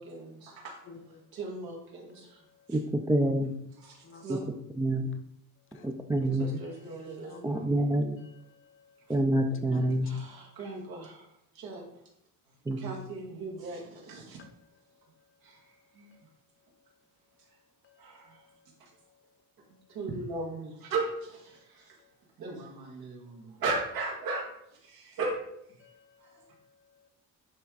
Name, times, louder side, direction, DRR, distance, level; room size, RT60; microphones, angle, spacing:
voice 1, 0.0-2.4 2.7-2.8 3.8-4.4 6.2-7.8 9.1-9.2 10.0-11.9 12.5-14.4 15.4-16.2 17.5-17.6 18.0-18.5 18.8-18.9 19.9-22.0 22.4-25.4 25.7-25.8 26.2-26.4, right 3 dB, 80° right, -3 dB, 2.4 m, -38 dB
voice 2, 2.7-3.5 4.3-4.4 4.8-5.1 5.8-6.6 7.4-8.2 9.1-10.1 12.7-12.9, right 1 dB, 10° right, 4 dB, 0.4 m, -27 dB
voice 3, 7.2-7.7 8.5-9.1 9.7-10.0 17.8-18.0 18.3-18.6 25.8-27.1, left 5 dB, 35° left, 6 dB, 0.8 m, -55 dB
10.5 x 3.5 x 4.0 m, 0.77 s
cardioid pair, 165°, 35 cm